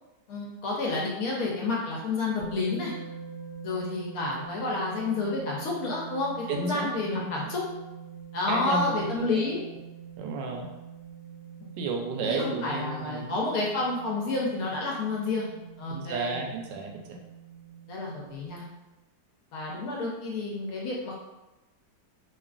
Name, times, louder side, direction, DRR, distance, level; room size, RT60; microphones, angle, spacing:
voice 1, 0.3-2.9 3.6-7.6 8.3-9.6 12.2-15.5 15.8-16.4 17.9-18.6 19.5-21.3, left 3 dB, 65° left, -3 dB, 0.9 m, -30 dB
sound 1, 1.3-18.9, right 7 dB, 60° right, 0.8 m, -45 dB
voice 2, 6.5-7.5 8.5-9.5 10.2-10.7 11.8-13.3 15.9-17.2, right 3 dB, 90° right, 2 dB, 1.2 m, -32 dB
3.0 x 2.4 x 2.3 m, 1.0 s
omnidirectional pair, 1.8 m